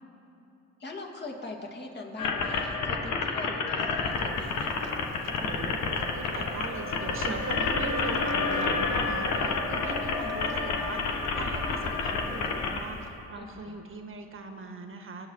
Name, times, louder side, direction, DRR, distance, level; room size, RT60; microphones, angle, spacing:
voice 1, 0.8-4.7 7.6-8.1 9.7-9.8 10.1-10.3 13.4-13.7, left 2 dB, 35° left, 1 dB, 2.3 m, -42 dB
sound 1, 2.2-12.8, left 4 dB, 70° left, 1.6 m, -29 dB
Chewing mastication, 4.1-13.1, right 3 dB, 60° right, 0.8 m, -42 dB
voice 2, 5.2-5.8 6.1-15.3, right 3 dB, 45° right, 5 dB, 1.7 m, -40 dB
24.0 x 8.7 x 4.8 m, 2.9 s
cardioid pair, 90°, 30 cm